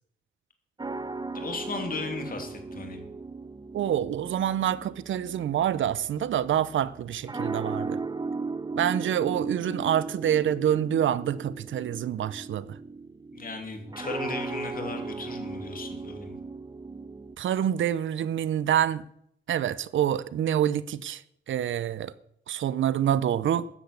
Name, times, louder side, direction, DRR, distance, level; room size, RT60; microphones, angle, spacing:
sound 1, 0.8-17.4, right 3 dB, 20° right, 0.8 m, -37 dB
voice 1, 1.3-3.0 13.3-16.4, left 4 dB, 50° left, 2.9 m, -36 dB
voice 2, 3.7-8.0 8.7-12.6 17.4-19.0 19.5-21.2 21.5-22.1 22.5-23.7, right 10 dB, 90° right, 0.6 m, -26 dB
13.0 x 8.1 x 8.3 m
cardioid pair, 75°, 19 cm